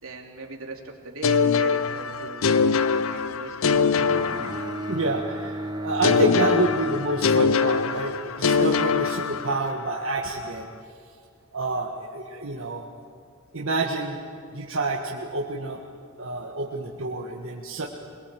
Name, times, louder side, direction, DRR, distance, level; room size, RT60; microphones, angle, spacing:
voice 1, 0.0-2.6 3.0-4.0, right 3 dB, 85° right, 1 dB, 3.1 m, -41 dB
sound 1, 1.2-5.2 6.0-9.9, left 5 dB, 75° left, 0.6 m, -23 dB
Bowed string instrument, 4.0-8.2, equal, 20° right, 0.8 m, -34 dB
voice 2, 4.9-10.7 11.5-12.8 13.5-14.2 14.5-15.8 16.2-17.9, right 2 dB, 70° right, -1 dB, 1.7 m, -28 dB
23.0 x 22.0 x 7.7 m, 2.3 s
head